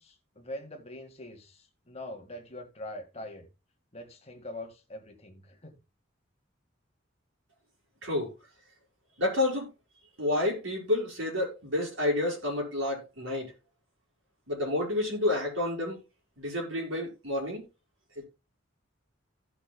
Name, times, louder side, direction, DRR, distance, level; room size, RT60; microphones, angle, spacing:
voice 1, 0.0-3.5 3.9-5.8, left 1 dB, 30° left, 1.8 m, -43 dB
voice 2, 8.0-8.3 9.2-9.7 10.2-13.5 14.5-16.0 16.4-17.7 18.2-18.3, left 2 dB, 80° right, 5.8 m, -29 dB
16.5 x 6.0 x 2.3 m
head